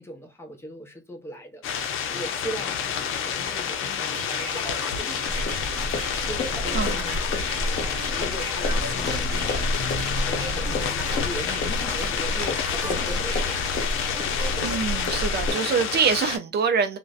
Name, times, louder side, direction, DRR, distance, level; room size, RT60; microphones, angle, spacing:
voice 1, 0.0-1.6 2.1-5.6 6.2-9.7 10.1-13.9, equal, 10° left, 0.7 m, -39 dB
sound 1, 1.6-16.4, left 7 dB, 85° left, 0.5 m, -29 dB
sound 2, 4.1-14.8, right 1 dB, 20° right, 1.1 m, -37 dB
sound 3, 5.2-15.5, left 1 dB, 55° left, 1.0 m, -30 dB
voice 2, 14.6-17.0, right 6 dB, 55° right, 0.4 m, -25 dB
2.5 x 2.1 x 2.3 m
cardioid pair, 130°, 21 cm